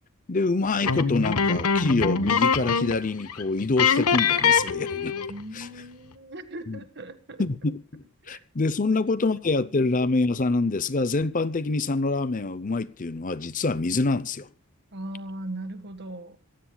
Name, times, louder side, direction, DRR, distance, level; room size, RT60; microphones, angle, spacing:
voice 1, 0.3-5.1 5.5-5.7 6.7-6.8 7.4-14.5, left 3 dB, 35° left, 0.6 m, -26 dB
sound 1, 0.8-3.0 3.3-3.4 3.8-5.4, left 6 dB, 90° left, 1.1 m, -23 dB
voice 2, 5.3-7.4 8.2-8.4 8.9-9.0 9.3-9.4 9.8-9.9 14.9-16.4, right 1 dB, 50° right, 1.6 m, -39 dB
26.0 x 15.0 x 2.3 m
head